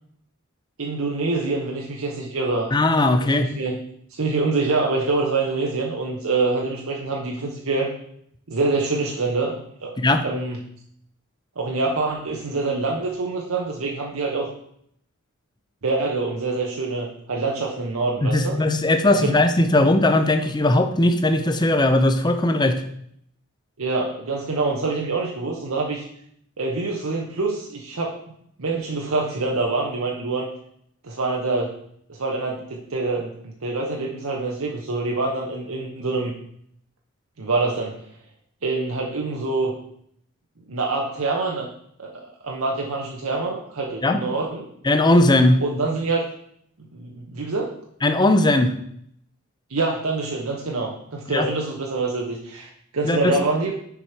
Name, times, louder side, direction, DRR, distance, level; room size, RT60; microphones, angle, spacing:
voice 1, 0.8-2.7 3.2-3.8 4.1-7.9 8.5-9.5 9.8-9.9 10.2-10.6 11.6-14.5 15.8-18.6 19.2-19.4 23.8-26.0 26.6-28.2 28.6-30.5 31.0-31.7 32.1-36.3 37.4-38.0 38.6-39.7 40.7-41.7 42.0-42.1 42.4-44.7 45.6-46.2 46.9-47.7 49.7-53.7, right 3 dB, 75° right, 0 dB, 0.9 m, -25 dB
voice 2, 2.7-3.5 10.0-10.2 18.2-22.8 44.0-44.2 44.8-45.6 48.0-48.7 51.3-51.5 53.0-53.4, left 1 dB, 20° left, 8 dB, 0.6 m, -18 dB
7.0 x 5.1 x 4.5 m, 0.69 s
head